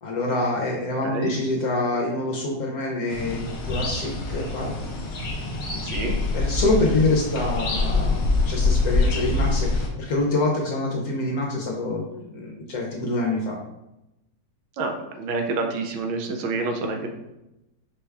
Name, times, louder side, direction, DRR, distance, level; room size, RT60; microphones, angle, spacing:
voice 1, 0.0-4.7 6.3-13.6, left 2 dB, 65° left, -2 dB, 1.0 m, -26 dB
sound 1, 3.1-9.9, left 3 dB, 80° left, 0.5 m, -25 dB
voice 2, 5.8-6.2 14.8-17.1, right 3 dB, 85° right, 4 dB, 1.4 m, -28 dB
5.4 x 2.3 x 3.3 m, 0.91 s
omnidirectional pair, 2.1 m